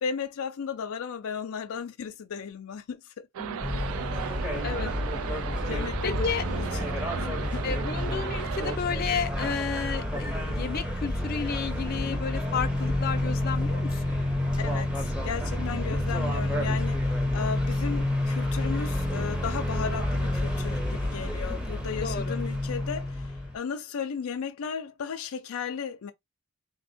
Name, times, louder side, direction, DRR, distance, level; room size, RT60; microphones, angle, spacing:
voice 1, 0.0-3.3 4.1-4.3 4.6-5.0 5.6-7.7 11.9-12.2 14.6-26.1, left 6 dB, 85° left, 0.4 m, -35 dB
sound 1, 3.3-8.8, right 8 dB, 75° right, 0.3 m, -36 dB
voice 2, 3.4-3.8 4.6-4.9 6.0-6.4 7.6-14.2 15.6-16.0 21.9-22.4, left 6 dB, 45° left, 0.6 m, -32 dB
sound 2, 3.6-23.5, left 1 dB, 5° right, 0.8 m, -29 dB
3.4 x 2.1 x 4.1 m
head